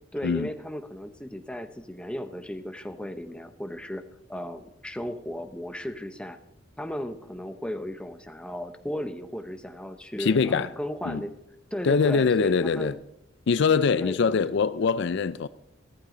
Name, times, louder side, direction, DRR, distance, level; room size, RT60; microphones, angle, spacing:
voice 1, 0.1-4.0 4.3-6.4 6.8-11.3 11.7-13.0 14.0-14.4, equal, 5° left, 0.8 m, -35 dB
voice 2, 10.2-10.7 11.1-11.2 11.8-12.9 13.5-15.5, left 5 dB, 60° left, 0.4 m, -23 dB
15.0 x 14.0 x 3.9 m
head